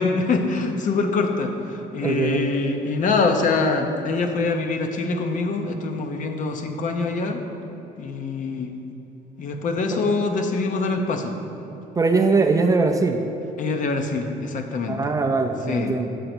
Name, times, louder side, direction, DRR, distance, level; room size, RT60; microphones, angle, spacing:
voice 1, 0.0-7.4 8.0-8.7 9.4-11.4 13.6-15.0 15.7-15.9, left 3 dB, 50° left, 5 dB, 0.6 m, -24 dB
voice 2, 2.0-2.4 9.9-10.0 12.0-13.2 14.9-16.1, right 3 dB, 20° right, 5 dB, 0.3 m, -21 dB
6.8 x 3.9 x 6.0 m, 2.9 s
cardioid pair, 110°, 17 cm